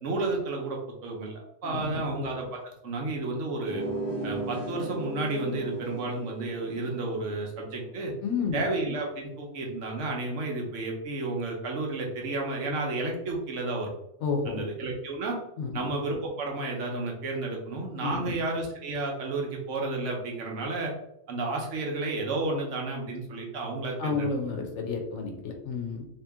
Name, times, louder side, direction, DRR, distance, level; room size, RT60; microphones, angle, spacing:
voice 1, 0.0-3.8 4.2-8.1 8.5-13.9 14.5-15.4 15.7-20.9 21.3-24.3, right 2 dB, 80° right, 0 dB, 1.2 m, -32 dB
voice 2, 1.6-2.0 8.2-8.7 14.2-14.6 15.6-15.9 18.0-18.4 24.0-26.1, left 5 dB, 70° left, 3 dB, 1.0 m, -31 dB
sound 1, 3.6-8.9, right 2 dB, 15° right, 0.7 m, -37 dB
2.9 x 2.9 x 3.4 m, 0.80 s
omnidirectional pair, 1.2 m